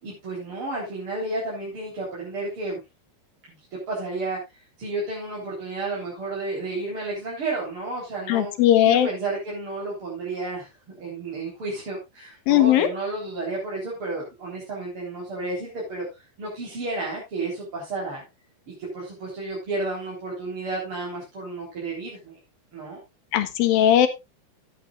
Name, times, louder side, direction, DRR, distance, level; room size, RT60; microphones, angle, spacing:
voice 1, 0.0-2.8 3.5-3.6 3.9-4.4 4.8-8.5 8.8-10.7 11.0-16.1 16.4-18.2 18.7-22.3 22.7-23.0, right 2 dB, 35° right, -5 dB, 4.4 m, -31 dB
voice 2, 8.3-9.1 12.5-12.9 23.3-24.1, left 11 dB, 70° left, 9 dB, 2.9 m, -18 dB
14.5 x 9.6 x 2.5 m, 0.22 s
omnidirectional pair, 4.5 m